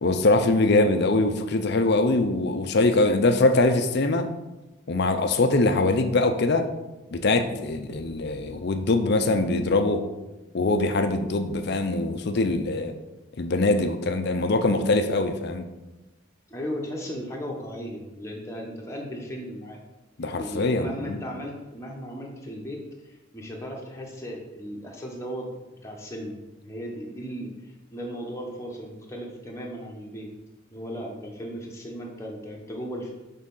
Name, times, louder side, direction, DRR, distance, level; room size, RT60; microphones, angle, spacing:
voice 1, 0.0-4.3 4.9-6.7 7.1-10.0 10.5-12.9 13.4-15.6 20.2-21.2, left 2 dB, 50° left, 8 dB, 0.5 m, -23 dB
voice 2, 16.5-19.8 20.2-25.5 25.8-30.3 30.7-33.1, equal, 15° left, -1 dB, 1.0 m, -36 dB
6.5 x 3.6 x 5.5 m, 1.1 s
head